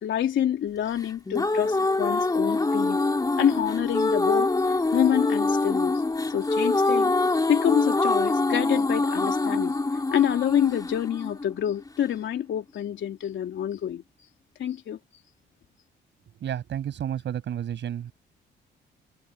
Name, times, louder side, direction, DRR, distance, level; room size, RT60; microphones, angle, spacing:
voice 1, 0.0-3.0 3.4-6.0 6.3-7.1 7.5-9.8 10.1-14.0 14.6-15.0, left 10 dB, 70° left, 3.5 m, -27 dB
sound 1, 1.0-12.1, left 2 dB, 20° left, 3.4 m, -25 dB
voice 2, 16.4-18.1, right 9 dB, 65° right, 6.8 m, -31 dB
cardioid pair, 90°, 20 cm